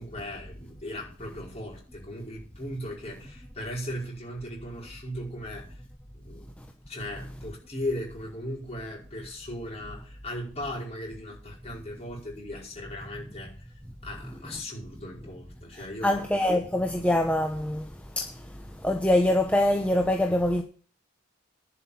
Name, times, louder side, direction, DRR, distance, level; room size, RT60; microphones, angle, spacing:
voice 1, 0.0-5.8 6.1-6.5 6.9-16.2, left 1 dB, 30° left, 5.2 m, -37 dB
voice 2, 16.0-17.9 18.1-20.6, left 1 dB, 5° left, 0.9 m, -24 dB
11.0 x 5.9 x 8.9 m
head